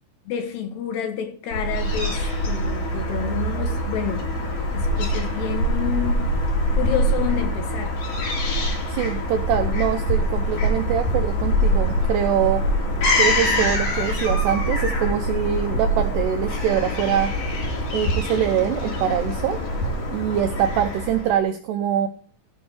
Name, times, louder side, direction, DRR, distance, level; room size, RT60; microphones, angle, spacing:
voice 1, 0.3-2.2 2.4-4.3 4.7-6.2 6.7-8.0, left 8 dB, 65° left, 3.3 m, -29 dB
Fowl / Gull seagull, 1.5-21.4, equal, 50° left, 3.4 m, -24 dB
voice 2, 8.9-12.6 13.2-17.3 17.9-19.6 20.1-22.1, right 9 dB, 80° right, 2.4 m, -24 dB
16.5 x 6.5 x 4.6 m
omnidirectional pair, 5.7 m